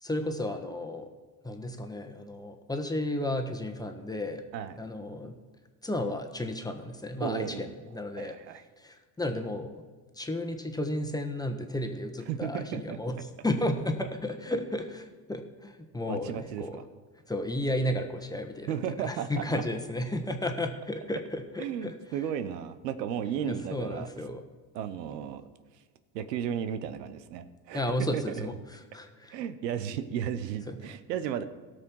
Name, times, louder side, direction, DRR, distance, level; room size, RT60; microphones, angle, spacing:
voice 1, 0.0-1.1 1.4-4.4 4.8-5.3 5.8-8.4 8.8-9.8 10.2-13.2 13.4-16.8 17.3-21.9 23.5-24.4 27.7-29.4 30.7-30.8, left 1 dB, 10° left, 5 dB, 1.3 m, -33 dB
voice 2, 7.2-7.8 8.2-8.6 12.3-13.0 16.1-16.8 18.7-19.4 21.6-24.1 24.7-25.4 26.1-27.8 28.1-28.5 29.3-31.4, right 9 dB, 90° right, 12 dB, 0.9 m, -34 dB
17.0 x 6.4 x 4.7 m, 1.4 s
hypercardioid pair, 85°, 48 cm